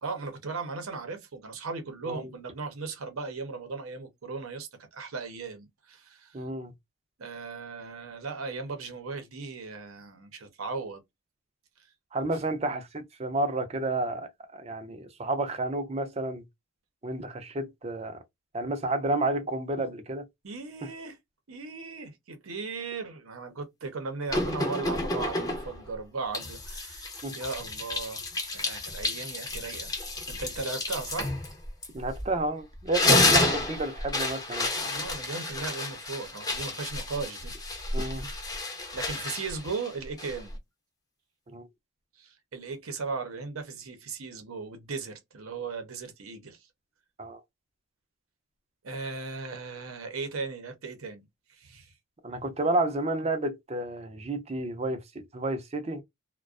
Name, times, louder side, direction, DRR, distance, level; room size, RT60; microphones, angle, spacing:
voice 1, 0.0-6.4 7.2-11.0 20.4-21.2 21.5-28.2 28.5-30.0 30.3-31.4 34.8-37.5 38.6-40.6 42.2-46.7 48.8-51.9, right 4 dB, 80° right, 0.7 m, -37 dB
voice 2, 6.3-6.7 12.1-16.4 17.0-18.2 18.5-20.3 20.8-20.9 27.2-27.4 31.9-35.0 37.9-38.3 41.5-41.7 47.2-47.4 52.2-56.0, right 2 dB, 30° right, 0.5 m, -31 dB
sound 1, 24.3-25.8 26.3-32.4 32.7-40.6, left 2 dB, 20° left, 0.6 m, -30 dB
2.4 x 2.2 x 2.3 m
head